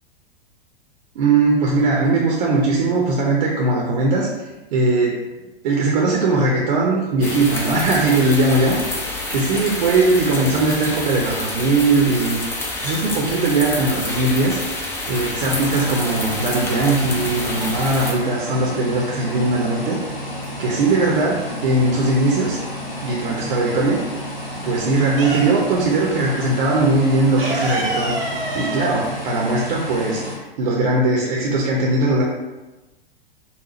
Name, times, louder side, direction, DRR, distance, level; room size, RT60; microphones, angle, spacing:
voice 1, 1.2-4.3 4.7-5.2 5.6-8.8 9.3-14.6 15.1-20.0 20.6-22.7 23.0-24.0 24.6-32.2, right 2 dB, 55° right, -2 dB, 0.6 m, -19 dB
sound 1, 7.2-18.1, left 2 dB, 10° left, 0.3 m, -28 dB
sound 2, 15.4-30.4, equal, 85° left, 1.1 m, -31 dB
sound 3, 20.0-20.9 21.2-23.2 23.5-25.9 26.2-26.3 26.6-30.2, right 2 dB, 80° right, 0.9 m, -28 dB
4.1 x 2.0 x 2.9 m, 1.1 s
figure-of-eight pair, 100°, 29 cm